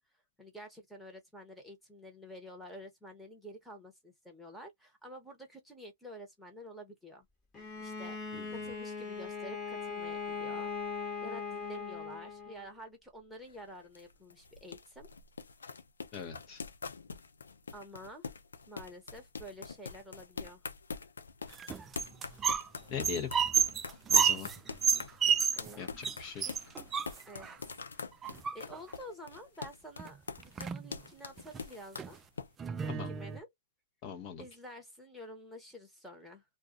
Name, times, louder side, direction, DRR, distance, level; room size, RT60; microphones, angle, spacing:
voice 1, 0.4-7.3 7.8-8.2 8.5-10.7 11.2-15.1 17.7-18.3 18.7-20.6 25.6-25.8 26.4-26.6 27.3-27.8 28.5-32.2 32.8-33.5 34.4-36.4, equal, ahead, 1.1 m, -49 dB
Bowed string instrument, 7.5-12.7, left 5 dB, 15° left, 1.2 m, -39 dB
sound 1, 13.4-32.5, left 5 dB, 90° left, 0.6 m, -44 dB
voice 2, 16.1-16.6 22.9-23.3 24.1-24.5 25.8-26.5 32.9-33.2 34.0-34.4, left 7 dB, 35° left, 0.9 m, -40 dB
sound 2, 21.5-22.7 23.0-25.8 26.0-26.2 26.4-27.5 28.2-28.9 30.0-30.1 30.4-30.9 31.4-31.6 32.0-32.1 32.6-33.4, right 7 dB, 15° right, 0.3 m, -30 dB
2.4 x 2.3 x 3.7 m
hypercardioid pair, 135°, 0 cm